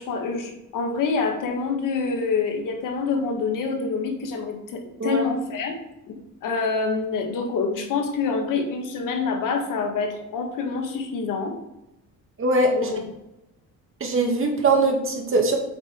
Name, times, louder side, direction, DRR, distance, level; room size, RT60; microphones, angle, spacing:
voice 1, 0.0-5.8 6.1-11.5 12.7-13.0, left 4 dB, 80° left, 4 dB, 1.8 m, -26 dB
voice 2, 12.4-12.9 14.0-15.6, right 2 dB, 40° right, 1 dB, 2.3 m, -21 dB
8.7 x 5.7 x 4.6 m, 0.89 s
cardioid pair, 110°, 31 cm